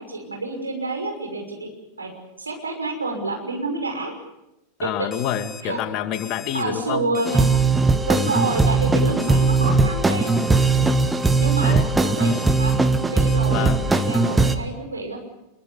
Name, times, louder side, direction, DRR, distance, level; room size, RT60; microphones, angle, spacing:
voice 1, 0.0-1.7 2.0-2.1 2.4-4.1 4.8-4.9 5.6-5.8 6.5-7.4 8.0-10.3 11.4-11.7 12.0-12.7 13.1-15.2, right 3 dB, 80° right, 3 dB, 5.9 m, -28 dB
voice 2, 4.8-7.2 11.6-11.9 13.5-13.9, left 10 dB, 40° left, 8 dB, 2.3 m, -28 dB
Alarm, 5.1-5.6 6.1-6.6 7.1-7.6 8.2-8.7 9.2-9.7 10.2-10.7 11.2-11.7 12.2-12.7 13.3-13.4, left 5 dB, 10° left, 2.8 m, -40 dB
sound 1, 7.2-14.5, right 3 dB, 10° right, 1.5 m, -19 dB
25.5 x 23.0 x 7.0 m, 0.94 s
figure-of-eight pair, 90°, 0 cm